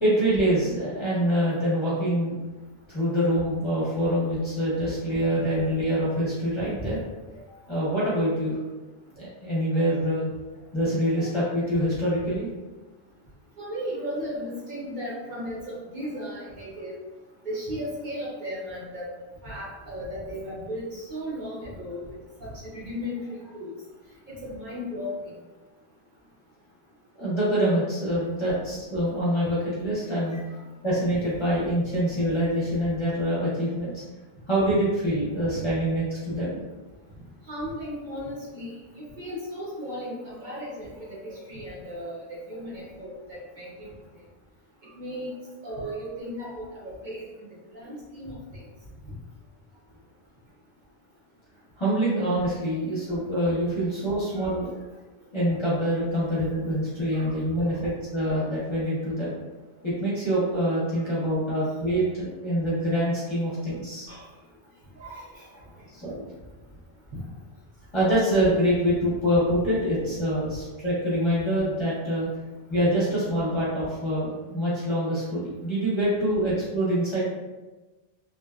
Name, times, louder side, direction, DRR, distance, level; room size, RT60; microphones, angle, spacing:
voice 1, 0.0-2.3 2.9-7.0 7.3-8.6 9.2-10.3 10.7-12.5 27.1-30.4 30.8-34.0 34.5-36.6 51.8-54.7 55.3-59.3 59.8-64.1 65.9-66.2 67.9-72.3 72.7-77.2, equal, 35° left, -8 dB, 0.6 m, -25 dB
voice 2, 13.6-17.0 17.4-19.1 19.4-22.1 22.4-23.2 23.5-23.7 24.3-25.3 30.3-30.4 35.5-35.6 37.5-43.9 45.0-45.3 45.6-47.2 47.7-48.6 57.1-57.3 64.1-64.2 65.0-65.5 67.1-67.2, equal, 55° right, -6 dB, 0.7 m, -35 dB
2.6 x 2.2 x 2.2 m, 1.2 s
omnidirectional pair, 1.0 m